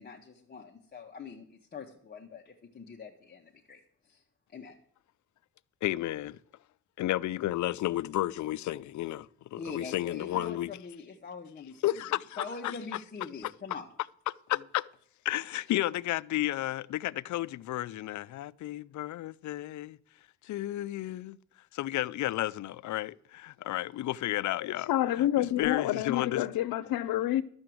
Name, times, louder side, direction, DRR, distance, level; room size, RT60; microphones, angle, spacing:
voice 1, 0.0-4.2 4.5-4.8 9.5-13.9 14.5-14.6, left 4 dB, 25° left, 0.9 m, -44 dB
voice 2, 5.8-6.4 7.0-10.7 11.8-12.7 14.3-14.9 15.2-20.0 20.4-21.4 21.7-24.9 25.4-26.4, left 15 dB, 55° left, 0.4 m, -32 dB
voice 3, 24.5-27.4, left 13 dB, 85° left, 0.8 m, -28 dB
12.0 x 6.9 x 7.6 m
cardioid pair, 150°, 35 cm